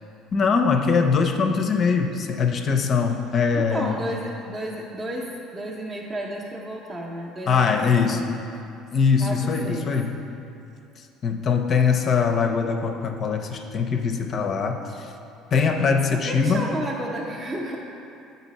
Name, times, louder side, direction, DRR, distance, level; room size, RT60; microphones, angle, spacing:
voice 1, 0.3-4.0 7.5-8.2 8.9-10.1 11.0-15.1 15.5-16.6, left 5 dB, 40° left, 5 dB, 0.5 m, -22 dB
voice 2, 3.5-8.2 9.2-9.9 16.1-17.8, right 1 dB, 20° right, -3 dB, 0.6 m, -32 dB
8.0 x 4.0 x 4.1 m, 2.7 s
cardioid pair, 120°, 0 cm